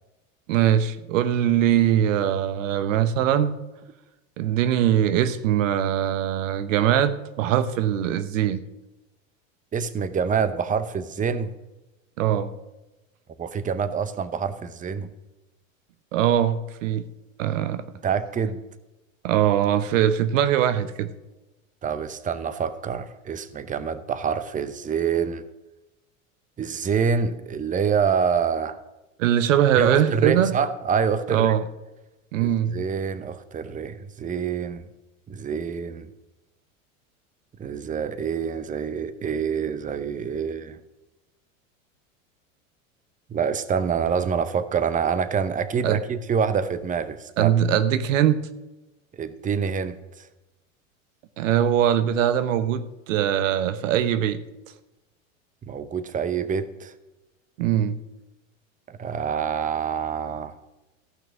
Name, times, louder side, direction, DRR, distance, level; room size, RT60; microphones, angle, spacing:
voice 1, 0.5-3.5 4.4-8.6 12.2-12.5 16.1-17.1 17.4-17.8 19.2-21.1 29.2-30.5 31.3-31.6 32.3-32.8 45.8-46.0 47.4-48.5 51.4-54.4 57.6-58.0, right 10 dB, 70° right, 13 dB, 0.9 m, -21 dB
voice 2, 9.7-11.5 13.4-15.1 18.0-18.6 21.8-25.4 26.6-28.8 29.8-31.5 32.4-34.8 35.3-36.1 37.6-40.8 43.3-47.5 49.2-50.3 55.6-56.9 58.9-60.5, right 6 dB, 20° right, 13 dB, 0.8 m, -26 dB
14.5 x 6.0 x 6.1 m, 1.0 s
hypercardioid pair, 90°, 40 cm